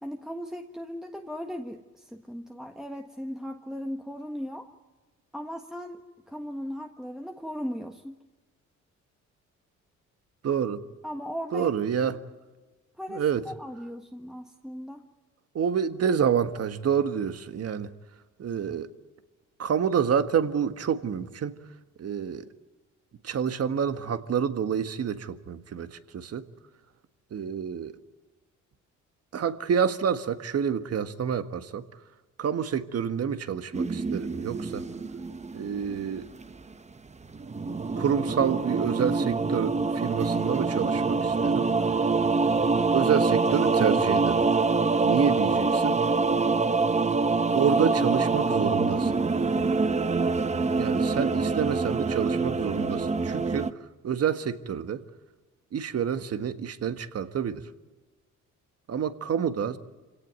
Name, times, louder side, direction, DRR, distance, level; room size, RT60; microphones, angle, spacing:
voice 1, 0.0-4.7 5.3-8.2 11.0-11.7 13.0-15.0, equal, ahead, 4 dB, 1.4 m, -37 dB
voice 2, 10.4-10.8 11.5-12.2 13.1-13.4 15.5-17.9 18.4-18.9 19.6-21.6 22.0-22.5 23.2-26.4 27.3-28.0 29.3-31.8 32.4-34.8 35.5-36.3 37.9-41.7 42.9-44.4 45.0-46.0 47.5-49.2 50.7-53.7 54.0-55.0 55.7-57.6 58.9-59.8, right 7 dB, 55° right, 10 dB, 1.6 m, -28 dB
sound 1, 33.7-36.7 37.2-53.7, right 4 dB, 20° right, 1.0 m, -25 dB
26.5 x 17.5 x 9.4 m, 1.3 s
cardioid pair, 90°, 30 cm